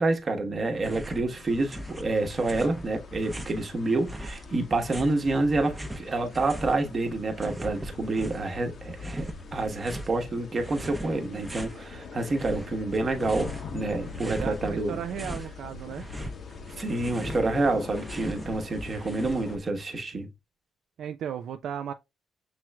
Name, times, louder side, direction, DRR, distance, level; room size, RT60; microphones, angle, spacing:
voice 1, 0.0-15.0 16.8-20.3, right 2 dB, 40° right, 1.0 m, -28 dB
sound 1, 0.7-1.3 1.5-3.6 4.1-6.8 7.0-8.5 8.9-10.1 10.6-11.8 12.2-13.7 14.0-15.5 15.8-19.7, right 1 dB, 15° right, 0.6 m, -40 dB
sound 2, 1.3-19.6, left 5 dB, 55° left, 0.8 m, -43 dB
voice 2, 14.2-16.1 21.0-21.9, right 9 dB, 70° right, 0.3 m, -35 dB
6.0 x 3.1 x 2.2 m
cardioid pair, 90°, 0 cm